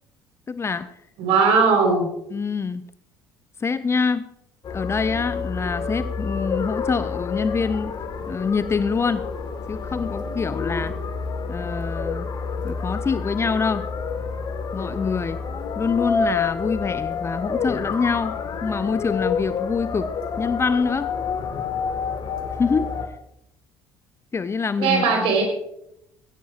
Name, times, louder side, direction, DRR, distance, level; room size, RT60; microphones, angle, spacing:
voice 1, 0.5-0.9 2.3-2.8 3.6-4.3 4.7-7.9 8.3-9.2 9.7-11.0 11.5-12.3 12.6-13.9 14.7-15.4 15.8-21.1 22.6-22.9 24.3-25.3, left 5 dB, 25° left, 14 dB, 0.6 m, -25 dB
voice 2, 1.2-2.1 24.8-25.4, right 5 dB, 55° right, 3 dB, 4.1 m, -18 dB
sound 1, 4.6-23.1, left 5 dB, 40° left, 1.6 m, -29 dB
18.5 x 17.0 x 2.5 m, 0.78 s
figure-of-eight pair, 55°, 11 cm